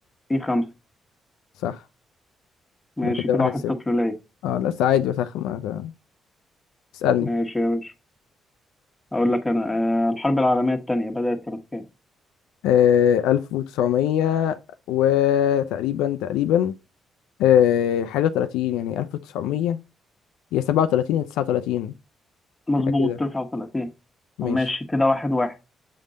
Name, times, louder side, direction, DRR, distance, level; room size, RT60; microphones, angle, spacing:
voice 1, 0.3-0.7 3.0-4.1 7.2-7.9 9.1-11.8 22.7-23.9 24.4-25.6, left 1 dB, 15° left, 1.3 m, -23 dB
voice 2, 3.0-3.5 4.4-5.9 7.0-7.3 12.6-14.6 14.9-16.7 17.4-19.1 19.3-19.8 20.5-21.9 23.0-23.2 24.4-24.6, left 10 dB, 90° left, 0.4 m, -21 dB
7.5 x 3.6 x 3.8 m
supercardioid pair, 65°, 0 cm